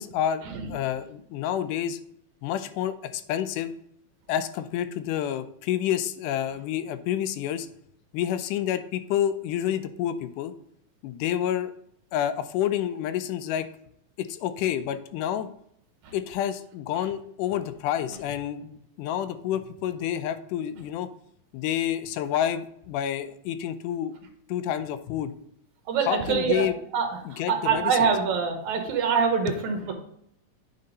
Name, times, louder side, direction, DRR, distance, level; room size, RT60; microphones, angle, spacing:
voice 1, 0.0-2.0 2.4-3.7 4.3-7.7 8.1-10.5 11.0-11.7 12.1-13.7 14.2-15.5 16.1-21.1 21.5-24.1 24.5-25.3 26.1-26.8 27.3-28.1, left 10 dB, 90° left, 11 dB, 2.2 m, -29 dB
voice 2, 25.9-26.7 26.9-29.9, right 6 dB, 70° right, 4 dB, 2.5 m, -25 dB
9.3 x 5.3 x 4.0 m, 0.70 s
omnidirectional pair, 3.6 m